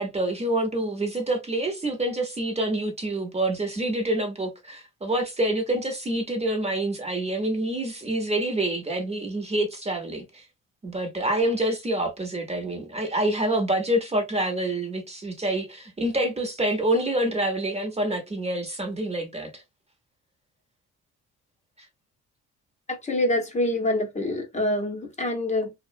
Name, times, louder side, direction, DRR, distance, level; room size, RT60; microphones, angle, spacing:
voice 1, 0.0-10.5 10.8-19.6, right 1 dB, 20° right, 0.7 m, -27 dB
voice 2, 22.9-25.7, left 1 dB, 25° left, 0.7 m, -26 dB
2.3 x 2.1 x 2.6 m
cardioid pair, 90°, 30 cm